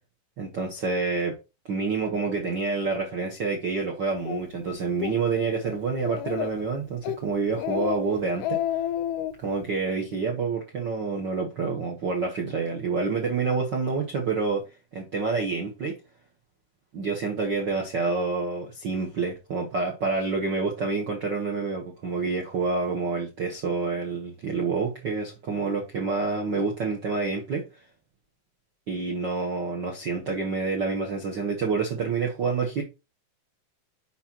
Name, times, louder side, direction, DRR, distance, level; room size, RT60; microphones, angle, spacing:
voice 1, 0.4-1.3 1.6-8.6 9.4-16.0 16.9-27.6 28.9-32.8, right 4 dB, 70° right, 1.0 m, -28 dB
Speech, 4.3-4.4 4.9-5.2 5.5-5.6 6.0-6.6 7.0-7.2 7.6-8.0 8.3-9.3, left 11 dB, 80° left, 1.8 m, -30 dB
6.5 x 5.6 x 2.9 m
omnidirectional pair, 3.9 m